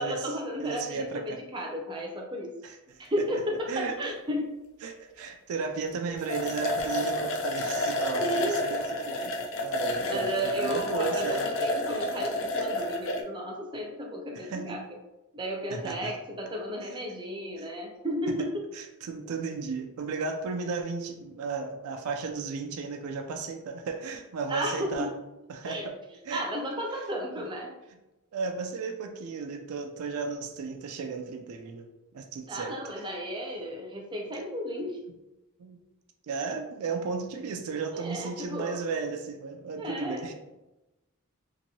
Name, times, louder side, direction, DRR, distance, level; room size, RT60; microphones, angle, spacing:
voice 1, 0.0-2.5 3.0-4.6 8.2-8.6 10.0-14.8 15.3-18.6 19.2-19.3 24.5-25.1 25.6-25.9 26.3-27.7 32.5-35.0 37.9-38.8 39.8-40.3, equal, 20° right, 0 dB, 0.5 m, -33 dB
voice 2, 0.6-1.4 2.6-2.8 3.2-3.3 3.7-4.0 4.8-9.3 9.6-11.5 14.4-14.8 15.7-16.2 17.6-17.7 18.7-25.1 25.5-25.9 26.3-26.4 28.3-31.9 32.1-32.7 35.6-35.8 36.3-40.3, right 4 dB, 75° right, 4 dB, 0.4 m, -34 dB
sound 1, 5.9-6.0 6.2-13.2, left 2 dB, 60° left, 0.4 m, -30 dB
2.9 x 2.6 x 2.7 m, 0.98 s
head